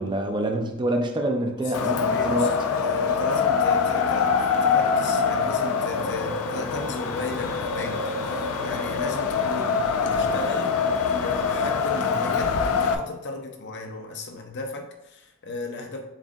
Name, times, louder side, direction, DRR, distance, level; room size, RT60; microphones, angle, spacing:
voice 1, 0.0-2.6, right 1 dB, 20° right, 4 dB, 0.4 m, -26 dB
Wind, 1.7-12.9, left 5 dB, 85° left, 0.4 m, -24 dB
voice 2, 1.7-4.3 4.6-8.0 8.4-10.7 11.1-16.0, left 3 dB, 55° left, 3 dB, 0.7 m, -35 dB
sound 1, 3.1-12.9, equal, 20° left, 0.9 m, -42 dB
7.1 x 2.5 x 2.6 m, 0.87 s
head